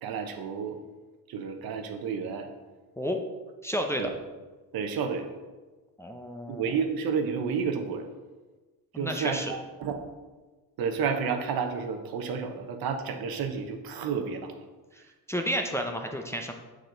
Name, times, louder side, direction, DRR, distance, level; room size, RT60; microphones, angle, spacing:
voice 1, 0.0-0.8 1.3-2.5 4.0-4.1 4.7-5.3 6.5-8.1 8.9-10.0 10.8-14.5, right 6 dB, 65° right, 6 dB, 1.0 m, -31 dB
voice 2, 3.6-4.1 6.0-6.7 8.9-9.5 15.3-16.5, equal, 5° left, 2 dB, 0.6 m, -31 dB
6.6 x 6.5 x 3.9 m, 1.2 s
cardioid pair, 105°, 39 cm